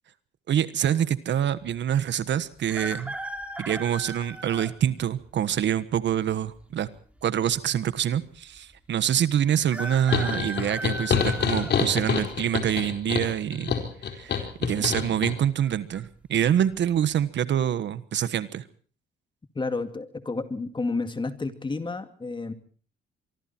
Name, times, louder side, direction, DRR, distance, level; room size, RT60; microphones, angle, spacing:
voice 1, 0.5-3.2 3.6-6.9 7.2-13.7 14.1-18.6, right 10 dB, 65° right, 15 dB, 1.4 m, -26 dB
sound 1, 2.7-4.7 5.4-5.5 6.6-7.2 7.5-7.6 7.8-7.9 9.7-12.3 12.8-13.2 14.4-14.7 15.0-15.1 15.6-16.0 16.5-16.6, right 1 dB, 5° right, 3.0 m, -37 dB
sound 2, 10.1-15.3, left 7 dB, 60° left, 4.4 m, -27 dB
voice 2, 14.8-15.3 19.5-22.5, left 3 dB, 25° left, 9 dB, 2.5 m, -31 dB
24.5 x 24.5 x 4.5 m, 0.43 s
cardioid pair, 90°, 20 cm